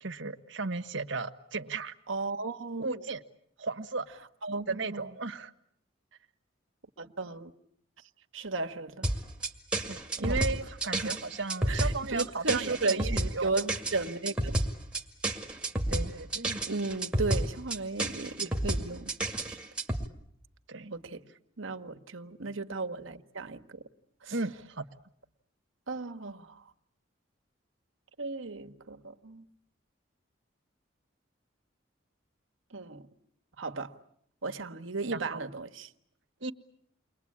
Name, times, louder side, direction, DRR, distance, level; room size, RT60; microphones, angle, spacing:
voice 1, 0.0-1.9 2.8-3.2 3.6-4.1 4.7-5.5 9.9-13.5 15.9-16.6 20.7-20.9 24.3-24.9 35.1-35.4 36.4-36.5, right 3 dB, 70° right, 1.4 m, -35 dB
voice 2, 2.1-3.1 4.4-5.1 7.0-7.5 8.3-9.1 10.2-10.5 11.0-11.1 11.7-14.6 16.7-19.1 19.4-19.6 20.9-21.3 21.6-23.8 24.2-24.4 25.9-26.7 28.2-29.5 32.7-33.1 33.6-34.0 34.4-35.9, right 3 dB, 85° right, 1.5 m, -35 dB
sound 1, 9.0-20.1, right 1 dB, 5° right, 2.1 m, -31 dB
30.0 x 22.5 x 8.7 m
head